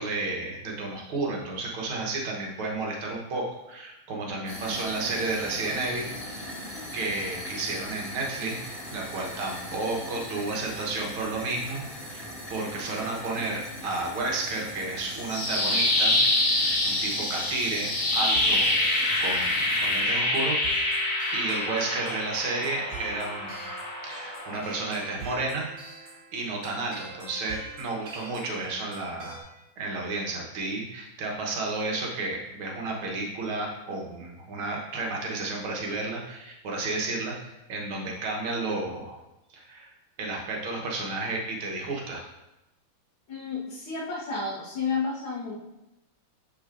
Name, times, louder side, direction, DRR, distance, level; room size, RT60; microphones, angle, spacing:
voice 1, 0.0-6.6 6.9-8.6 8.9-16.2 16.5-18.7 19.2-23.6 24.0-25.7 26.3-29.4 29.8-39.2 39.5-39.9 40.2-42.3, right 3 dB, 75° right, -1 dB, 1.9 m, -32 dB
sound 1, 4.5-20.0, left 1 dB, 15° left, 1.8 m, -40 dB
sound 2, 15.0-25.1, left 1 dB, 40° left, 1.5 m, -26 dB
sound 3, 18.3-29.4, right 3 dB, 45° right, 1.7 m, -44 dB
voice 2, 43.3-45.6, left 4 dB, 70° left, -6 dB, 2.0 m, -31 dB
6.9 x 6.5 x 2.5 m, 0.94 s
omnidirectional pair, 2.4 m